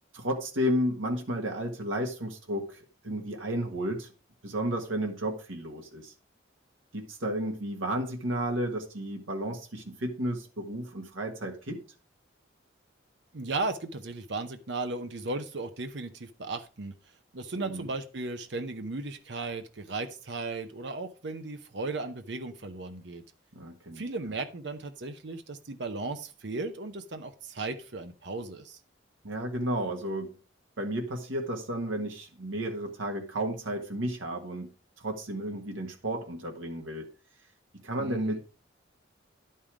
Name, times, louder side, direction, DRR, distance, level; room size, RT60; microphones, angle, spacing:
voice 1, 0.1-4.1 4.4-6.1 6.9-11.8 17.5-17.9 23.5-24.0 29.2-30.4 30.8-34.7 35.0-37.1 37.8-38.4, right 1 dB, 85° right, 3 dB, 1.5 m, -32 dB
voice 2, 13.3-16.9 17.3-23.2 24.0-28.8 38.0-38.4, right 3 dB, 60° right, 8 dB, 0.8 m, -36 dB
10.5 x 5.5 x 4.8 m, 0.35 s
head